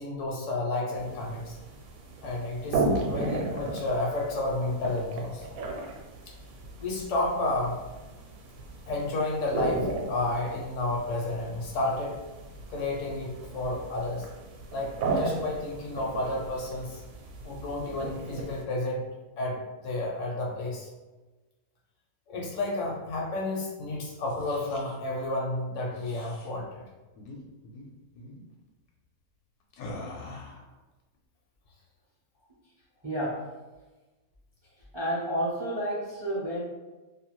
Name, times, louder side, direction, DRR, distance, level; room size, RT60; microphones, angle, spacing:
voice 1, 0.0-1.6 2.2-5.5 6.3-6.4 6.8-7.8 8.9-12.2 12.7-14.3 14.7-17.0 17.4-19.0 19.4-20.9 22.3-26.8, left 2 dB, 70° left, -1 dB, 0.9 m, -31 dB
sound 1, 1.0-18.6, right 2 dB, 75° right, 1.0 m, -35 dB
sound 2, 24.1-25.0 25.9-26.5 27.1-27.4 27.6-27.9 28.2-28.4 29.7-30.7, left 2 dB, 90° left, 1.1 m, -43 dB
voice 2, 33.0-33.5 34.9-36.6, equal, 40° right, -7 dB, 0.3 m, -30 dB
2.6 x 2.3 x 3.0 m, 1.2 s
omnidirectional pair, 1.5 m